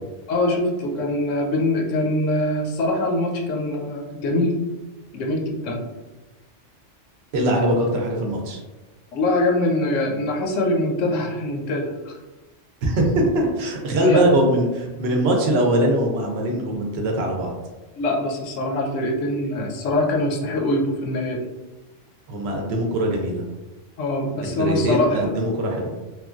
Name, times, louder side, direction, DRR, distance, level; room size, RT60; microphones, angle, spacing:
voice 1, 0.3-4.6 5.1-5.9 9.1-12.2 14.0-14.3 18.0-21.5 24.0-25.3, left 1 dB, 90° left, 1 dB, 0.9 m, -23 dB
voice 2, 7.3-8.6 12.8-17.5 22.3-23.4 24.4-25.9, right 1 dB, 65° right, 1 dB, 0.8 m, -21 dB
3.0 x 2.2 x 2.3 m, 1.1 s
omnidirectional pair, 1.2 m